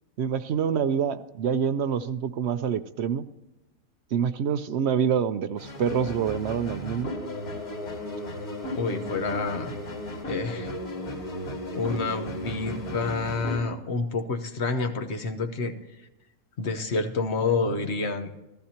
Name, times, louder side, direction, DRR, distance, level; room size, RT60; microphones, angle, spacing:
voice 1, 0.2-3.2 4.1-7.1, right 7 dB, 70° right, 11 dB, 0.6 m, -26 dB
sound 1, 5.6-13.6, left 1 dB, 80° left, 2.9 m, -35 dB
voice 2, 8.8-9.7 10.3-10.7 11.7-15.7 16.6-18.3, left 3 dB, 50° left, 7 dB, 1.2 m, -28 dB
15.0 x 13.5 x 2.9 m, 1.0 s
omnidirectional pair, 1.6 m